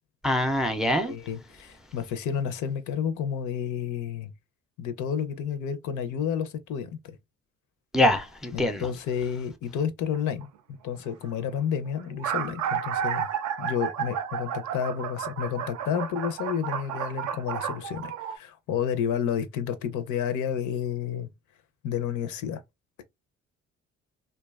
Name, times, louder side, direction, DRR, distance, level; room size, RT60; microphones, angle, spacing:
voice 1, 0.2-1.1 7.9-8.9, left 1 dB, ahead, 0.3 m, -24 dB
voice 2, 1.0-4.3 4.8-7.2 8.5-10.5 10.8-13.3 13.6-21.3 21.8-22.6, left 8 dB, 75° left, 0.5 m, -30 dB
sound 1, 10.1-10.4 11.3-11.4 11.5-11.6 12.0-18.4, right 8 dB, 70° right, 0.5 m, -32 dB
2.5 x 2.3 x 2.2 m
cardioid pair, 90°, 30 cm